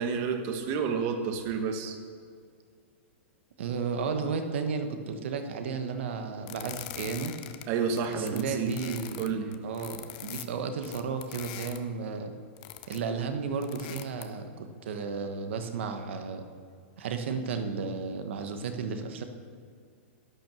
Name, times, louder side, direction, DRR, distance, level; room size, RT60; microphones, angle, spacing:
voice 1, 0.0-2.0 7.7-8.7 9.2-9.6, right 6 dB, 35° right, 7 dB, 1.2 m, -30 dB
voice 2, 3.6-7.3 8.1-9.2 9.6-12.3 12.9-16.4 17.0-19.2, right 5 dB, 70° right, 7 dB, 1.3 m, -33 dB
sound 1, 6.5-7.6 7.9-11.8 12.6-13.1 13.6-14.4, left 14 dB, 40° left, 0.7 m, -42 dB
11.5 x 9.2 x 6.3 m, 2.1 s
hypercardioid pair, 155°, 7 cm